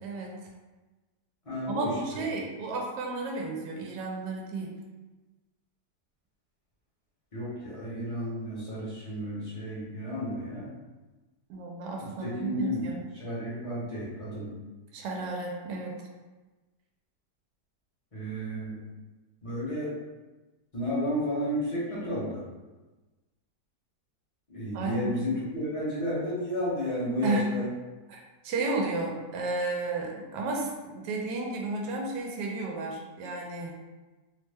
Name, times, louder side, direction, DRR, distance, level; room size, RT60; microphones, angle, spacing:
voice 1, 0.0-0.3 1.7-4.8 11.5-13.0 14.9-15.9 24.7-25.2 27.2-27.5 28.1-33.7, right 3 dB, 80° right, 0 dB, 1.2 m, -32 dB
voice 2, 1.4-2.2 7.3-10.7 12.0-12.8 13.2-14.5 18.1-18.8 19.4-19.9 20.7-22.4 24.5-27.7, equal, 30° left, -8 dB, 0.7 m, -32 dB
3.1 x 2.1 x 3.4 m, 1.2 s
omnidirectional pair, 1.8 m